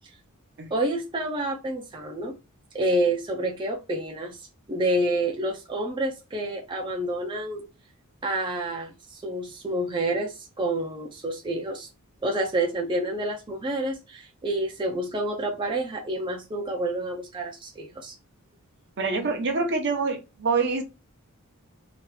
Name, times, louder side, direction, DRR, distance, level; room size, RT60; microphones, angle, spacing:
voice 1, 0.7-2.4 2.7-4.4 4.7-7.6 8.2-11.9 12.2-18.1, right 1 dB, 20° right, 0.5 m, -28 dB
voice 2, 19.0-20.8, right 4 dB, 55° right, 0.7 m, -26 dB
2.9 x 2.4 x 3.2 m
head